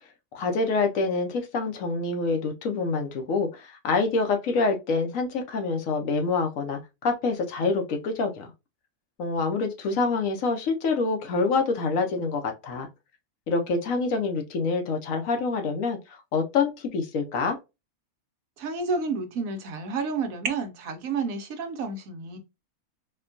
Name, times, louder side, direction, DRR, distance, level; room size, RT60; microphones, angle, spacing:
voice 1, 0.3-8.5 9.2-12.9 13.5-17.6, left 4 dB, 70° left, 1.0 m, -26 dB
voice 2, 18.6-22.4, right 4 dB, 70° right, 1.1 m, -30 dB
4.3 x 2.2 x 2.5 m
omnidirectional pair, 1.6 m